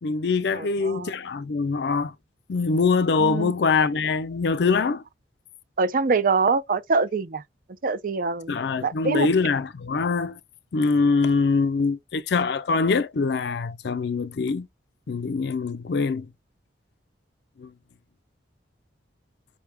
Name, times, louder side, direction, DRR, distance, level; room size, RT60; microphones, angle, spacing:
voice 1, 0.0-2.1 2.5-5.0 8.5-10.4 10.7-14.7 15.1-16.3 17.6-17.7, left 4 dB, 65° left, 0.5 m, -23 dB
voice 2, 0.5-1.1 3.2-3.5 5.8-7.4 7.8-8.5 8.8-9.3, right 4 dB, 50° right, 0.5 m, -24 dB
5.5 x 2.2 x 3.4 m
head